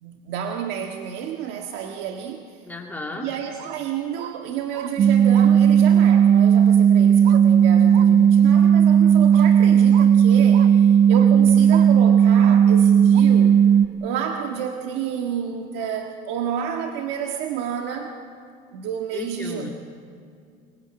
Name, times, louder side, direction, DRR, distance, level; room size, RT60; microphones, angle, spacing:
voice 1, 0.0-2.7 3.1-18.2 18.7-19.7, right 8 dB, 80° right, 3 dB, 1.7 m, -30 dB
voice 2, 2.7-3.3 19.1-19.7, left 2 dB, 10° left, 1 dB, 2.2 m, -34 dB
sound 1, 3.6-3.8 4.1-4.3 4.7-4.9 5.3-5.5 6.1-6.2 7.2-7.4 7.9-8.1 8.5-8.7 9.3-9.5 9.9-10.1 10.5-10.7 11.1-11.3 11.7-11.9 12.4-12.6 13.1-13.2, right 12 dB, 60° right, 1.2 m, -37 dB
sound 2, 5.0-13.9, right 8 dB, 40° right, 0.8 m, -15 dB
23.0 x 23.0 x 8.9 m, 2.3 s
cardioid pair, 140°, 17 cm